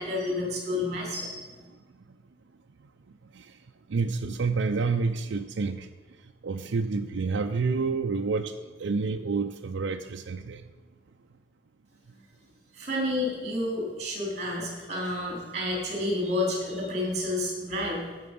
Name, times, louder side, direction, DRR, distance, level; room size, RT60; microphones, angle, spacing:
voice 1, 0.0-1.6 12.7-18.0, left 1 dB, 35° right, -2 dB, 3.6 m, -30 dB
voice 2, 3.9-5.9 6.4-8.5 8.8-10.6, right 4 dB, 70° right, 4 dB, 0.5 m, -28 dB
16.0 x 6.1 x 5.3 m, 1.4 s
head